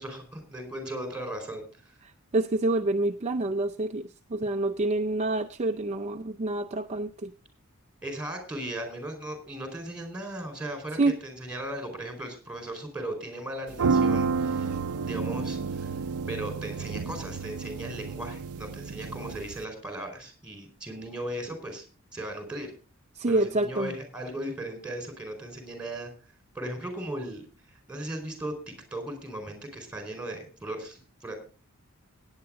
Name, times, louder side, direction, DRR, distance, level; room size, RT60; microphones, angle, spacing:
voice 1, 0.0-1.9 8.0-15.9 16.3-21.9 22.1-22.7 23.3-26.1 26.5-27.4 27.9-31.4, right 1 dB, 5° right, 6 dB, 4.4 m, -37 dB
voice 2, 2.3-7.3 11.0-11.2 23.2-23.9, right 2 dB, 30° right, 7 dB, 0.5 m, -27 dB
sound 1, 13.7-19.6, right 5 dB, 85° right, 0.5 m, -30 dB
17.0 x 9.7 x 3.7 m, 0.34 s
head